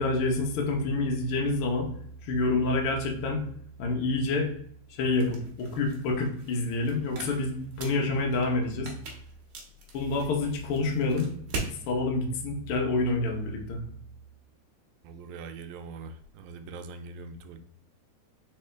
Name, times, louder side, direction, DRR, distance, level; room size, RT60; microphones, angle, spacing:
voice 1, 0.0-1.9 2.2-3.4 3.8-4.5 5.0-8.9 9.9-11.3 11.9-13.8, left 3 dB, 65° left, 1 dB, 1.5 m, -27 dB
sound 1, 5.1-11.8, right 3 dB, 65° right, 1.9 m, -42 dB
voice 2, 15.0-17.6, right 4 dB, 85° right, 7 dB, 1.9 m, -42 dB
4.3 x 3.7 x 3.3 m, 0.63 s
omnidirectional pair, 3.3 m